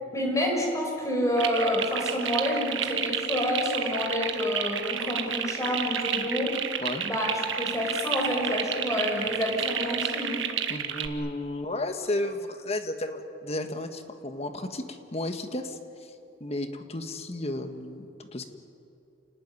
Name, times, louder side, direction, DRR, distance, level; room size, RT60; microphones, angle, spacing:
voice 1, 0.1-6.5 7.0-10.4, left 1 dB, 15° left, 1 dB, 5.6 m, -28 dB
sound 1, 1.4-11.1, right 8 dB, 75° right, 1.7 m, -31 dB
voice 2, 10.7-15.8 16.4-18.4, left 1 dB, 35° left, 7 dB, 1.6 m, -33 dB
27.5 x 19.0 x 9.8 m, 2.8 s
head